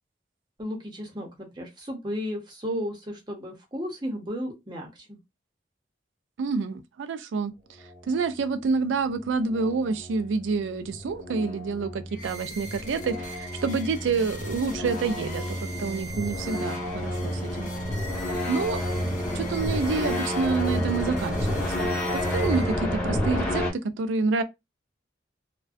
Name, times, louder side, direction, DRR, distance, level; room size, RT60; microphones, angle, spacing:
voice 1, 0.6-5.2, equal, 25° right, 0.7 m, -34 dB
voice 2, 6.4-7.5 8.1-17.7 18.5-18.8 19.3-24.4, right 4 dB, 85° right, 0.3 m, -28 dB
sound 1, 9.1-23.7, left 1 dB, 10° left, 0.9 m, -30 dB
sound 2, 12.1-23.1, equal, 40° left, 0.6 m, -41 dB
2.4 x 2.2 x 2.4 m
head